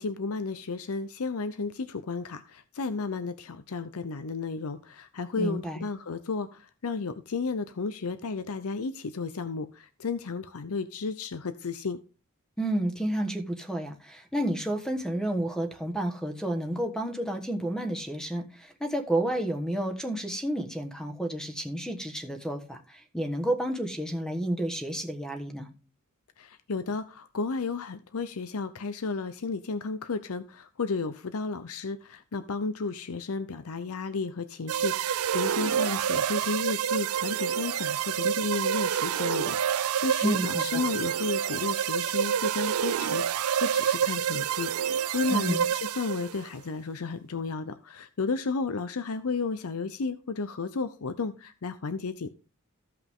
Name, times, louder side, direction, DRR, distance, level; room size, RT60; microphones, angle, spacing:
voice 1, 0.0-12.0 26.4-52.3, left 4 dB, 70° left, 0.6 m, -33 dB
voice 2, 5.4-5.8 12.6-25.7 40.2-40.8 45.3-45.6, right 1 dB, 5° left, 1.2 m, -30 dB
sound 1, 34.7-46.4, right 9 dB, 70° right, 0.4 m, -28 dB
15.0 x 5.7 x 3.6 m
head